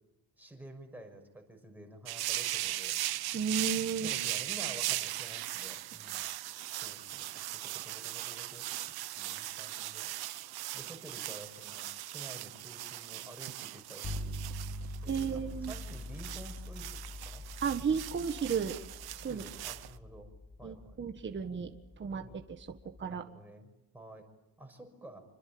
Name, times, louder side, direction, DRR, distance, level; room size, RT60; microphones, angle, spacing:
voice 1, 0.4-2.9 4.0-6.2 6.7-8.6 9.2-10.1 10.7-14.4 15.0-17.4 19.3-20.3 20.6-21.0 22.1-22.4 23.1-23.7 23.9-24.3 24.6-25.3, right 1 dB, 5° right, 3 dB, 6.1 m, -50 dB
sound 1, 2.1-19.9, right 15 dB, 85° right, 1.1 m, -39 dB
voice 2, 3.3-4.1 15.1-15.8 17.6-18.8 19.2-19.4 20.6-22.2 22.7-23.2, right 6 dB, 30° right, 5 dB, 1.7 m, -33 dB
sound 2, 14.0-23.0, left 1 dB, 35° left, 5.2 m, -44 dB
27.5 x 25.0 x 8.8 m, 0.94 s
cardioid pair, 145°, 37 cm